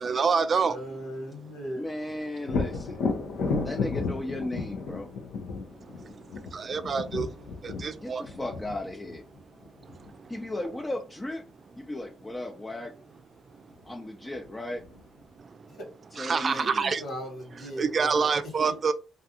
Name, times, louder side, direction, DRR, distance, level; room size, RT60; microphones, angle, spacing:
voice 1, 0.0-0.7 6.7-7.3 7.8-8.2 16.2-17.0 17.8-18.9, right 5 dB, 50° right, 0.3 m, -26 dB
voice 2, 0.5-1.9 15.7-15.8 16.4-18.3 18.7-18.8, equal, 70° left, 1.4 m, -38 dB
voice 3, 1.8-3.0 3.6-5.1 8.0-9.2 10.3-11.4 11.8-12.9 13.8-14.8 16.2-17.0, left 1 dB, 20° left, 0.5 m, -35 dB
Thunder, 2.4-10.1 13.7-13.8 14.3-15.2, left 4 dB, 85° left, 0.5 m, -33 dB
2.4 x 2.4 x 2.7 m
supercardioid pair, 65°, 0 cm